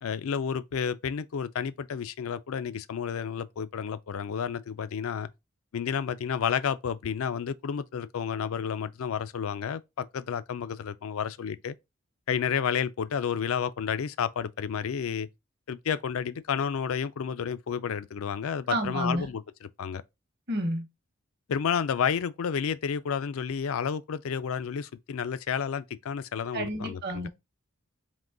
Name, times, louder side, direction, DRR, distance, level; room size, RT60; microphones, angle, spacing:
voice 1, 0.0-5.3 5.7-11.8 12.3-15.3 15.7-19.4 19.8-20.0 21.5-27.3, left 7 dB, 80° left, 0.4 m, -31 dB
voice 2, 18.7-19.3 20.5-20.9 26.5-27.3, right 1 dB, 50° right, 0.9 m, -30 dB
3.7 x 3.0 x 3.7 m
head